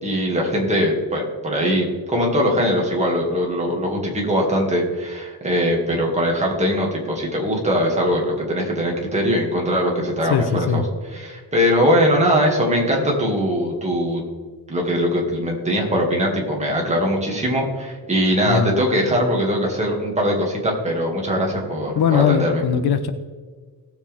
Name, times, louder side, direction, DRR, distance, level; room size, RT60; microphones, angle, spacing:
voice 1, 0.0-10.4 10.7-10.8 11.1-14.2 14.7-22.6, equal, 20° right, -1 dB, 2.4 m, -21 dB
voice 2, 10.3-10.8 18.5-18.7 21.9-23.1, left 8 dB, 80° left, 10 dB, 1.0 m, -20 dB
18.0 x 7.7 x 3.6 m, 1.5 s
wide cardioid pair, 175°, 38 cm